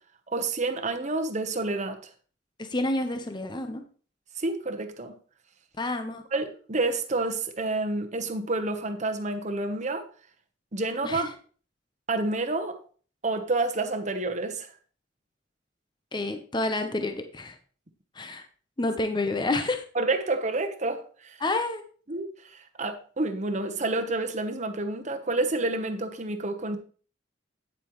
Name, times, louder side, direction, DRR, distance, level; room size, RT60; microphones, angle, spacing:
voice 1, 0.3-2.0 4.4-5.1 6.3-10.0 10.7-11.3 12.1-12.8 13.2-14.7 19.9-21.4 22.1-26.8, right 2 dB, 40° right, 1.0 m, -29 dB
voice 2, 2.6-3.8 5.8-6.2 11.0-11.3 16.1-17.6 18.2-18.4 18.8-19.8 21.4-21.8, left 2 dB, 25° left, 0.8 m, -29 dB
9.2 x 8.3 x 3.1 m
head